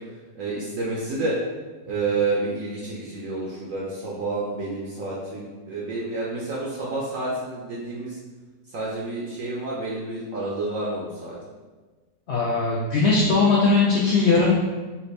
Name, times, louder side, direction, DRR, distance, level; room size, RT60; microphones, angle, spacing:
voice 1, 0.4-1.3 1.8-8.2 8.7-11.3, right 3 dB, 65° right, -5 dB, 0.9 m, -29 dB
voice 2, 12.3-14.5, left 3 dB, 90° left, -4 dB, 0.5 m, -19 dB
3.3 x 2.7 x 3.2 m, 1.3 s
omnidirectional pair, 1.7 m